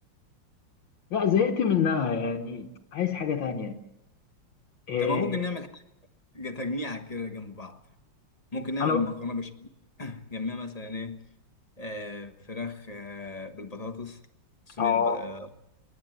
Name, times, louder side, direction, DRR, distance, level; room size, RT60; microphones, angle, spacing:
voice 1, 1.1-3.8 4.9-5.2 8.8-9.0 14.8-15.3, left 7 dB, 75° left, 2.1 m, -26 dB
voice 2, 5.0-5.8 6.3-7.8 8.5-9.7 10.0-11.2 11.8-14.2 14.7-15.5, left 3 dB, 20° left, 1.2 m, -34 dB
28.5 x 11.5 x 9.3 m
omnidirectional pair, 2.1 m